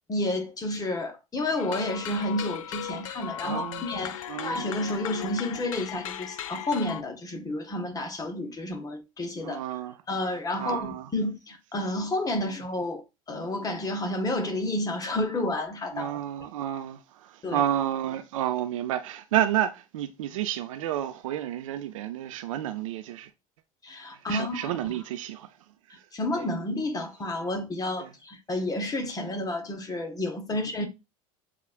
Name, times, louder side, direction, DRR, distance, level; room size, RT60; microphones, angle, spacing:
voice 1, 0.1-9.6 10.1-13.0 13.3-16.1 17.4-17.6 23.8-24.9 26.1-30.9, left 1 dB, 20° left, 1.0 m, -30 dB
sound 1, 1.6-7.0, left 11 dB, 65° left, 0.4 m, -37 dB
voice 2, 3.4-3.8 4.3-4.6 9.4-10.0 10.6-11.1 15.9-23.3 24.3-25.5 26.4-26.5 28.0-28.1 30.5-30.7, right 11 dB, 65° right, 0.5 m, -30 dB
7.1 x 2.4 x 2.4 m
figure-of-eight pair, 70°, 18 cm